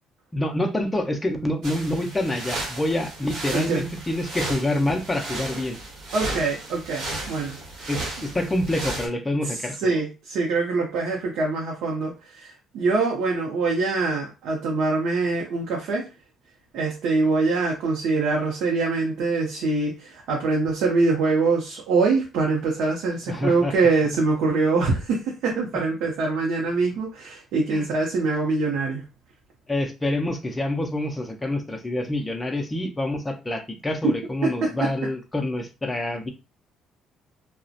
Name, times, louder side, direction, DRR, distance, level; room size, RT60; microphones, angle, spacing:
voice 1, 0.3-5.8 7.9-10.0 23.3-23.7 27.7-27.9 29.7-36.3, left 1 dB, 10° left, 3 dB, 0.4 m, -27 dB
sound 1, 1.6-9.1, right 2 dB, 60° right, 1.0 m, -34 dB
voice 2, 3.5-3.8 6.1-7.6 9.8-16.1 16.7-29.0 34.0-34.2 34.4-34.9, right 3 dB, 75° right, -1 dB, 0.6 m, -24 dB
2.6 x 2.0 x 2.4 m, 0.29 s
cardioid pair, 145°, 0 cm